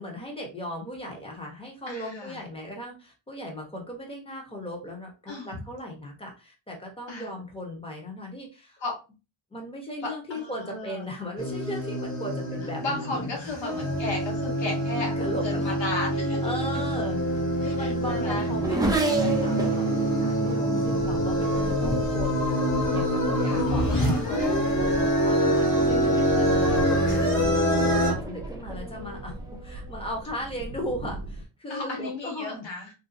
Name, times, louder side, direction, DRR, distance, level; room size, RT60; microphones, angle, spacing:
voice 1, 0.0-8.8 9.5-13.4 15.0-15.9 16.4-22.7 22.9-32.7, equal, 10° left, 0 dB, 0.9 m, -37 dB
voice 2, 1.9-2.4 5.3-5.6 7.1-7.3 8.8-8.9 10.3-11.0 12.8-15.1 15.4-16.5 17.6-18.5 23.4-23.7 27.8-28.2 31.7-32.9, left 2 dB, 65° left, -2 dB, 1.4 m, -34 dB
sound 1, 11.4-28.1, equal, 35° left, 1.2 m, -25 dB
Race car auto racing / Accelerating revving vroom, 16.9-22.8 23.6-24.0 24.4-30.3, right 2 dB, 10° right, 0.5 m, -34 dB
sound 2, 20.8-31.5, right 2 dB, 60° right, 0.6 m, -38 dB
3.3 x 2.7 x 2.5 m, 0.31 s
wide cardioid pair, 160°, 48 cm